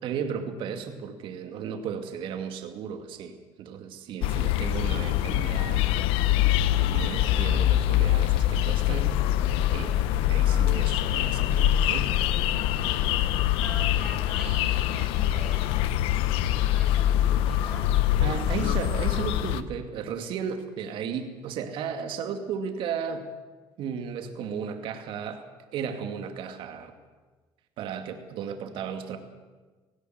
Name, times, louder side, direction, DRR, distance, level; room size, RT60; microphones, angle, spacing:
voice 1, 0.0-6.0 6.7-9.4 9.7-10.0 10.3-12.1 18.2-23.2 23.8-25.4 25.7-26.9 27.8-29.2, right 7 dB, 70° right, 6 dB, 2.4 m, -35 dB
sound 1, 4.2-19.6, left 12 dB, 90° left, 0.9 m, -24 dB
voice 2, 13.6-15.9 16.6-18.2 18.5-18.7, left 1 dB, 15° left, -6 dB, 6.5 m, -44 dB
18.0 x 16.5 x 9.5 m, 1.3 s
cardioid pair, 105°, 9 cm